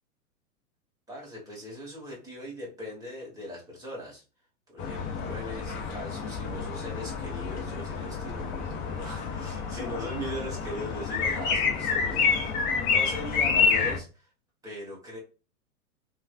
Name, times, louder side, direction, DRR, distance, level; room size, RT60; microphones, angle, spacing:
voice 1, 1.1-4.2 4.7-14.3 14.6-15.2, equal, 10° right, -3 dB, 1.4 m, -40 dB
sound 1, 4.8-14.0, left 5 dB, 20° left, 0.4 m, -28 dB
3.1 x 2.5 x 2.4 m, 0.32 s
figure-of-eight pair, 105°, 43 cm